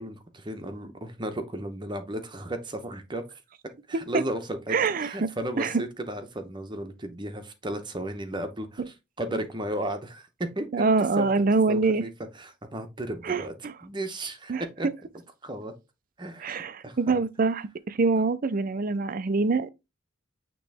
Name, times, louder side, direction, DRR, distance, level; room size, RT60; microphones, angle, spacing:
voice 1, 0.0-3.4 3.9-10.9 11.2-11.3 11.7-14.9 15.4-15.7 16.2-17.2, right 1 dB, 20° right, 0.9 m, -34 dB
voice 2, 4.7-5.1 5.6-5.7 8.8-8.9 10.7-12.0 13.2-13.7 14.5-14.6 16.4-19.7, right 4 dB, 45° right, 0.4 m, -25 dB
8.9 x 3.0 x 3.5 m
head